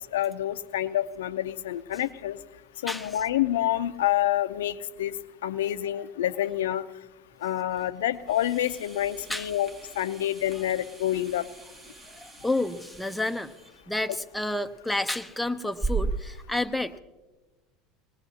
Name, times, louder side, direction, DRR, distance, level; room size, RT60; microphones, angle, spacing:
voice 1, 0.0-2.4 2.8-6.8 7.4-11.5, left 12 dB, 75° left, 14 dB, 0.6 m, -28 dB
voice 2, 2.9-3.2 9.3-9.5 12.1-13.5 13.9-17.0, left 2 dB, 5° left, 8 dB, 0.8 m, -30 dB
sound 1, 8.2-16.4, right 4 dB, 25° right, 2.1 m, -38 dB
22.0 x 19.0 x 2.8 m, 1.2 s
hypercardioid pair, 75°, 0 cm